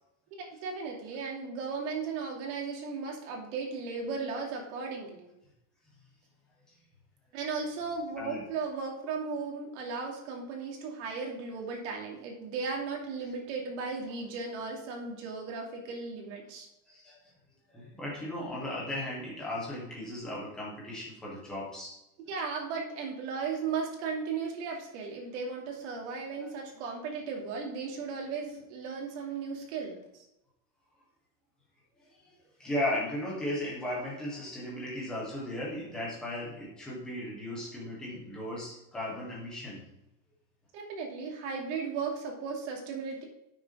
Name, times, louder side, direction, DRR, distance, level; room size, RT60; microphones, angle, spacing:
voice 1, 0.5-5.3 7.3-16.7 22.3-30.3 40.7-43.2, right 5 dB, 50° right, 0 dB, 2.7 m, -36 dB
voice 2, 16.9-17.3 17.7-21.9 26.4-26.5 32.0-39.8, left 1 dB, ahead, -5 dB, 0.3 m, -36 dB
9.1 x 6.4 x 5.0 m, 0.88 s
supercardioid pair, 170°, 45 cm